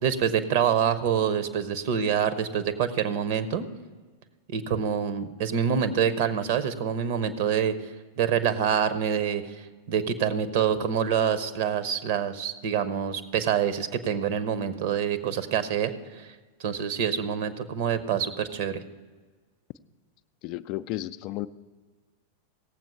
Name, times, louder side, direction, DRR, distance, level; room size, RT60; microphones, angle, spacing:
voice 1, 0.0-3.7 4.5-7.8 8.2-16.3 16.6-18.8, right 8 dB, 50° right, 11 dB, 0.9 m, -26 dB
voice 2, 20.4-21.5, left 16 dB, 40° left, 12 dB, 0.4 m, -33 dB
17.0 x 7.6 x 5.5 m, 1.4 s
figure-of-eight pair, 90°, 0 cm